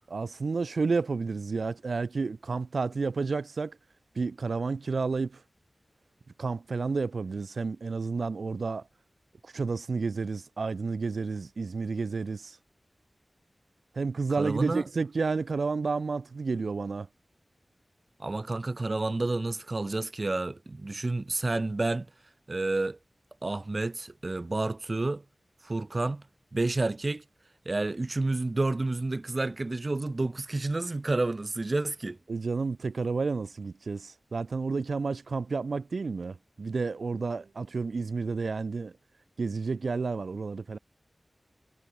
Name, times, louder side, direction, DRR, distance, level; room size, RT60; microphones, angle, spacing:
voice 1, 0.1-3.8 4.1-5.4 6.4-8.9 9.4-12.6 13.9-17.1 32.3-38.9 39.4-40.8, right 4 dB, 85° right, 0.9 m, -31 dB
voice 2, 14.4-14.9 18.2-22.1 22.5-23.0 23.4-25.2 25.6-26.2 26.5-27.2 27.7-32.2, right 2 dB, 50° right, 0.9 m, -30 dB
cardioid pair, 45°, 0 cm